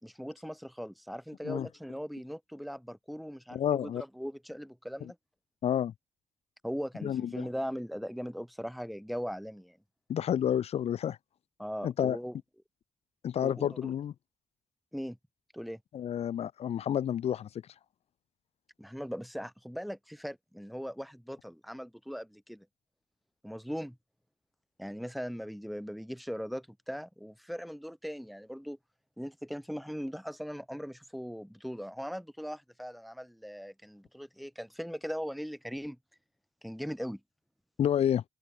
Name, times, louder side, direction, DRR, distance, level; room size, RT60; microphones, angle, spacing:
voice 1, 0.0-5.2 6.6-9.8 11.6-12.4 13.4-13.9 14.9-15.2 15.5-15.8 18.8-22.7 23.4-24.0 24.8-28.8 29.2-36.0 36.6-37.2, equal, ahead, 3.8 m, -39 dB
voice 2, 3.5-4.0 5.0-5.1 5.6-5.9 7.0-7.5 10.1-11.2 11.8-12.2 13.2-14.1 15.9-17.5 37.8-38.2, left 9 dB, 70° left, 2.8 m, -29 dB
open air
wide cardioid pair, 140°, 11 cm